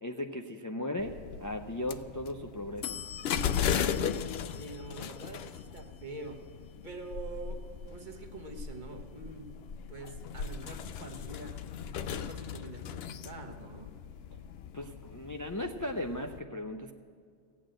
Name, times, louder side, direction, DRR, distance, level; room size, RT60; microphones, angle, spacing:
voice 1, 0.0-3.0 14.7-16.9, left 1 dB, 25° left, 3 dB, 0.4 m, -37 dB
sound 1, 1.0-16.4, left 8 dB, 65° left, 0.7 m, -37 dB
voice 2, 4.5-6.4 6.8-7.6 7.9-9.5 9.9-11.6 12.0-13.9, right 2 dB, 40° right, 3 dB, 1.3 m, -45 dB
16.0 x 8.6 x 7.6 m, 2.1 s
omnidirectional pair, 1.2 m